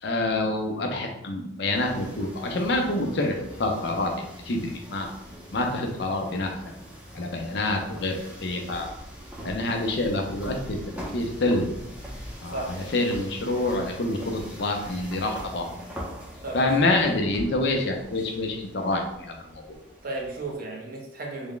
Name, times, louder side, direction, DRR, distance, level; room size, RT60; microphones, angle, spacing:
voice 1, 0.0-5.1 5.5-6.7 7.1-8.9 9.4-10.8 11.1-11.7 12.4-15.7 16.5-19.6, left 2 dB, 60° left, 2 dB, 0.5 m, -27 dB
sound 1, 1.7-20.5, equal, 5° right, 0.5 m, -42 dB
voice 2, 12.5-12.9 16.4-16.9 20.0-21.5, right 2 dB, 50° right, 0 dB, 0.7 m, -35 dB
3.4 x 2.1 x 3.8 m, 0.85 s
head